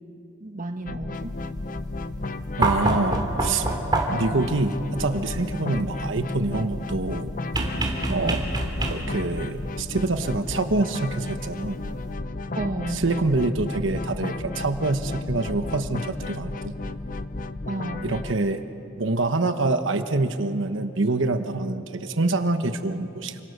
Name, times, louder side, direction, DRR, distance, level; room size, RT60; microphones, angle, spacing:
voice 1, 0.4-1.4 8.1-8.4 12.6-13.1 17.7-18.1, right 2 dB, 40° right, 6 dB, 1.2 m, -32 dB
sound 1, 0.9-18.3, left 2 dB, 40° left, 0.7 m, -33 dB
sound 2, 2.6-4.4 7.5-9.3 10.8-10.9, right 2 dB, 20° right, 2.9 m, -26 dB
voice 2, 2.6-3.7 4.1-7.3 8.1-8.4 8.9-11.8 12.9-16.8 18.0-18.6 19.0-23.4, right 2 dB, 65° right, 8 dB, 1.1 m, -26 dB
28.5 x 26.0 x 6.8 m, 2.9 s
head